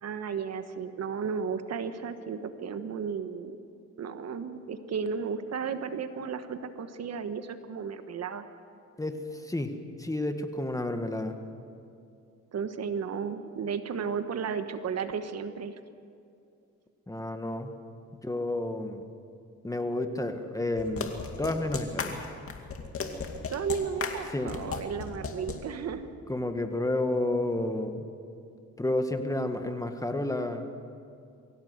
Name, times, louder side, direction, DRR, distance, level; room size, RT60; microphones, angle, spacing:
voice 1, 0.0-3.6 4.0-8.4 12.5-15.8 23.5-26.1, right 6 dB, 55° right, 9 dB, 1.3 m, -34 dB
voice 2, 9.0-11.4 17.1-17.7 18.1-19.1 19.6-22.1 24.3-24.6 26.3-28.1 28.8-30.6, left 1 dB, 10° left, 6 dB, 1.7 m, -31 dB
sound 1, 20.8-25.6, left 5 dB, 45° left, 2.4 m, -35 dB
23.5 x 16.5 x 8.1 m, 2.5 s
cardioid pair, 90°, 30 cm